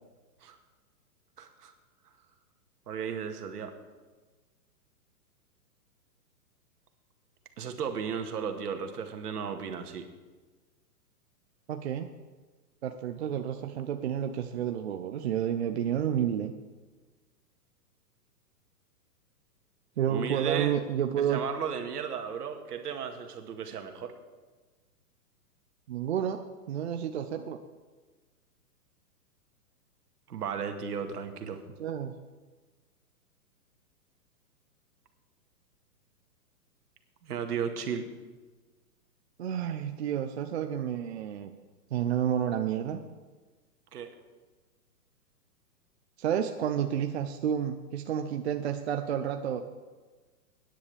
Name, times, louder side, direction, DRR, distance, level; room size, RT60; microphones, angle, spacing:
voice 1, 1.4-1.7 2.9-3.7 7.6-10.0 20.1-20.7 21.2-24.1 30.3-31.6 37.2-38.1 43.9-44.1, right 7 dB, 70° right, 5 dB, 1.9 m, -35 dB
voice 2, 11.7-12.1 12.8-16.5 20.0-21.4 25.9-26.4 26.7-27.6 31.8-32.1 39.4-41.5 41.9-43.0 46.2-49.6, right 9 dB, 45° right, 5 dB, 0.7 m, -30 dB
21.5 x 10.0 x 3.4 m, 1.3 s
hypercardioid pair, 160°, 48 cm